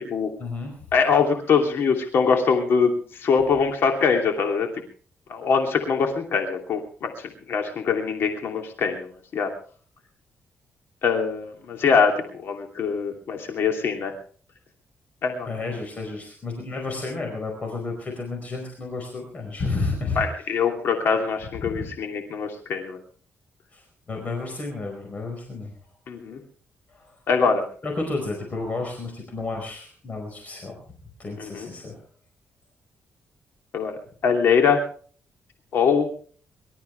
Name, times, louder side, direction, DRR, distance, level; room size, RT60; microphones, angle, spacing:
voice 1, 0.4-0.9 15.4-20.5 21.6-21.7 23.7-25.7 26.9-27.2 27.8-30.8 31.2-32.0, left 3 dB, 35° left, 2 dB, 4.8 m, -31 dB
voice 2, 0.9-4.7 5.3-9.1 9.3-9.5 11.0-14.1 15.2-15.5 20.2-23.0 26.1-26.4 27.3-27.6 31.4-31.7 33.7-33.9 34.2-34.8 35.7-36.1, left 5 dB, 65° left, 3 dB, 2.8 m, -23 dB
25.0 x 13.0 x 3.3 m, 0.43 s
cardioid pair, 120°, 4 cm